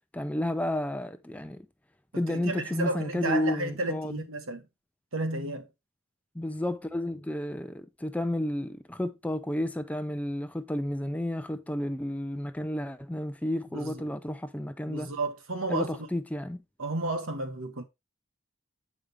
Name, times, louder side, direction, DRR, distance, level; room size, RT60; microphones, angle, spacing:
voice 1, 0.1-1.7 2.1-4.2 6.3-15.1 15.7-16.6, left 1 dB, 5° left, 0.5 m, -31 dB
voice 2, 2.3-4.6 5.1-5.7 13.7-14.1 14.9-16.0 16.8-17.8, right 2 dB, 90° right, 1.4 m, -32 dB
8.2 x 5.1 x 3.4 m
head